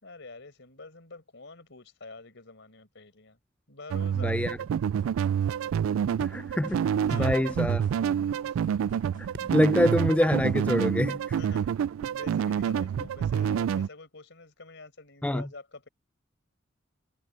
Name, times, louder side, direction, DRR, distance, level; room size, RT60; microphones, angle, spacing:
voice 1, 0.0-3.4 3.7-4.4 7.1-7.5 8.4-8.7 9.8-9.9 11.3-11.8 12.1-15.9, left 3 dB, 65° left, 4.9 m, -47 dB
sound 1, 3.9-13.9, right 8 dB, 90° right, 0.3 m, -28 dB
voice 2, 4.2-4.6 6.2-6.8 7.1-7.8 9.5-11.4 15.2-15.4, left 1 dB, 5° left, 0.3 m, -25 dB
sound 2, 4.9-11.1, left 2 dB, 40° left, 2.1 m, -53 dB
sound 3, 6.1-12.5, right 1 dB, 60° right, 4.4 m, -53 dB
head